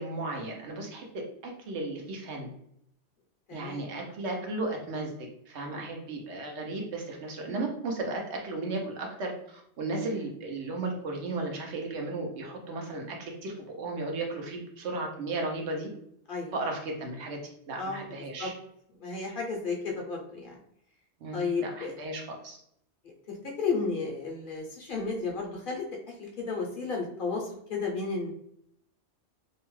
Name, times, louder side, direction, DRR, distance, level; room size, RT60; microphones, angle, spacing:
voice 1, 0.0-2.5 3.5-15.9 16.5-17.4 17.7-18.5 21.2-22.6, right 2 dB, 75° right, 1 dB, 1.0 m, -35 dB
voice 2, 3.5-3.9 5.8-5.9 16.3-16.5 17.8-18.1 18.4-18.5 19.0-20.6 21.3-21.9 23.3-25.8 26.2-28.3, left 4 dB, 55° left, -1 dB, 0.7 m, -33 dB
2.7 x 2.2 x 3.0 m, 0.71 s
omnidirectional pair, 1.2 m